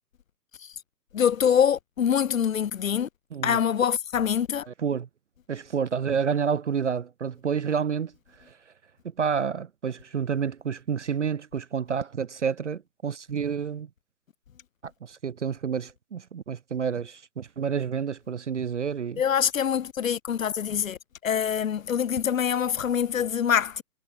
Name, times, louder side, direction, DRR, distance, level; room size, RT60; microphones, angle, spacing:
voice 1, 1.1-3.1 3.4-4.7 19.2-23.8, left 8 dB, 55° left, 1.1 m, -25 dB
voice 2, 5.5-8.1 9.2-13.9 14.8-19.2, right 7 dB, 50° right, 0.5 m, -29 dB
hypercardioid pair, 170°, 49 cm